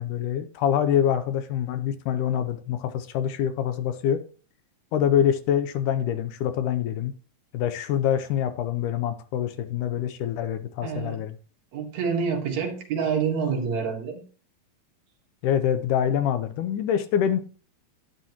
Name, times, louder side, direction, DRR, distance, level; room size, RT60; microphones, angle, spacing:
voice 1, 0.0-4.2 4.9-7.1 7.5-11.3 15.4-17.4, left 9 dB, 80° left, 2.2 m, -25 dB
voice 2, 10.8-11.2 11.7-14.2, right 6 dB, 60° right, 2.8 m, -27 dB
11.5 x 9.8 x 3.0 m
omnidirectional pair, 3.8 m